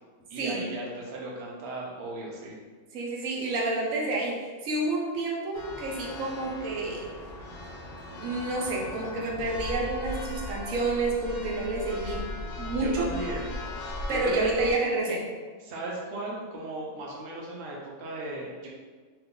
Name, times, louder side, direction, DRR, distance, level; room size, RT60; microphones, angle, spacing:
voice 1, 0.3-2.6 12.8-13.5 14.1-14.5 15.6-18.7, right 2 dB, 60° right, -3 dB, 0.8 m, -36 dB
voice 2, 2.9-7.1 8.2-12.3 12.6-13.1 14.1-15.3, right 2 dB, 90° right, -2 dB, 1.1 m, -29 dB
Church bell, 5.5-14.7, left 1 dB, 75° left, 0.9 m, -38 dB
2.8 x 2.4 x 3.5 m, 1.5 s
omnidirectional pair, 1.4 m